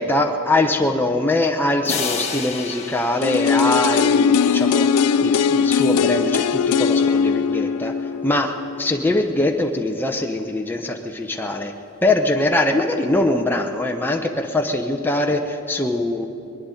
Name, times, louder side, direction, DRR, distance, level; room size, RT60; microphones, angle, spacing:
voice 1, 0.0-7.9 8.2-11.7 12.0-16.3, left 2 dB, 10° left, 2 dB, 0.6 m, -22 dB
sound 1, 1.8-4.5, left 5 dB, 30° left, 1.1 m, -30 dB
sound 2, 3.2-9.1 9.4-9.5, left 6 dB, 85° left, 0.4 m, -19 dB
21.5 x 10.5 x 5.0 m, 2.8 s
head